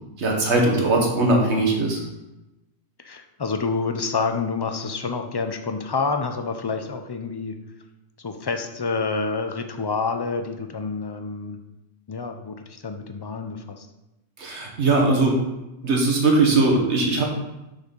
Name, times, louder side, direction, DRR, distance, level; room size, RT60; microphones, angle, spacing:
voice 1, 0.2-2.0 14.4-15.4 15.8-17.2, right 2 dB, 65° right, 0 dB, 1.7 m, -20 dB
voice 2, 3.0-7.5 8.2-11.6 12.1-13.9, left 4 dB, 35° left, 6 dB, 0.4 m, -28 dB
6.5 x 5.1 x 5.2 m, 0.97 s
omnidirectional pair, 1.3 m